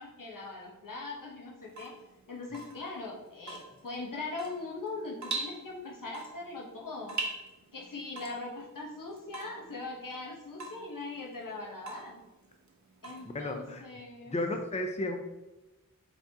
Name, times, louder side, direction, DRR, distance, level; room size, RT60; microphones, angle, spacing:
voice 1, 0.0-1.9 2.3-7.2 7.7-12.2 13.0-14.3, left 3 dB, 85° left, -2 dB, 1.0 m, -41 dB
Water tap faucet / Drip, 1.6-13.8, right 3 dB, 60° right, 0.7 m, -43 dB
voice 2, 13.3-13.8 14.3-15.2, left 1 dB, 20° left, 4 dB, 0.5 m, -33 dB
4.4 x 4.0 x 2.8 m, 1.0 s
wide cardioid pair, 50°, 32 cm